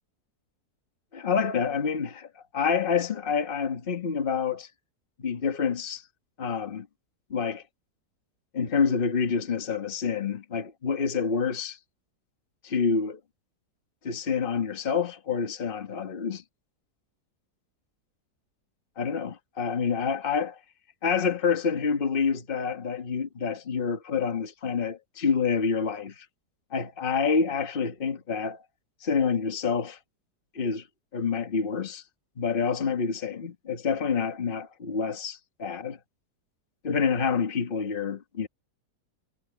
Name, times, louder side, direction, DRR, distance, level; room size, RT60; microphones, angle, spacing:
voice 1, 1.1-4.7 5.2-6.0 6.4-6.9 7.3-7.6 8.5-11.8 12.6-13.2 14.0-16.4 19.0-20.6 21.0-26.3 26.7-28.6 29.0-30.0 30.5-30.9 31.1-32.0 32.4-36.0 36.8-38.5, left 6 dB, 35° left, 1.6 m, -27 dB
omnidirectional pair, 1.7 m